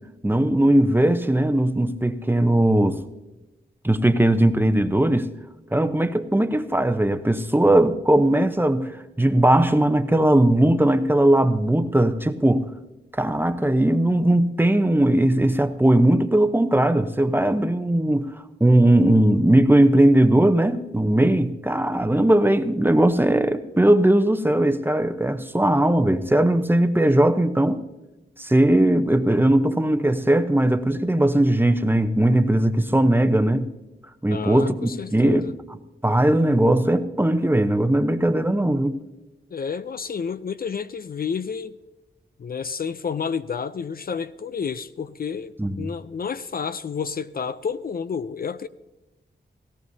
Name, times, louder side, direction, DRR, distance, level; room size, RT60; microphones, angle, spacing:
voice 1, 0.2-3.0 3.8-5.3 5.7-8.9 9.2-12.7 13.1-18.3 18.6-27.8 28.4-33.7 34.2-35.4 36.0-39.0 45.6-45.9, right 1 dB, 10° right, 0.8 m, -19 dB
voice 2, 34.3-35.5 39.5-41.8 42.4-45.5 45.8-48.7, left 6 dB, 50° left, 0.4 m, -30 dB
17.5 x 17.0 x 2.7 m
wide cardioid pair, 75°, 19 cm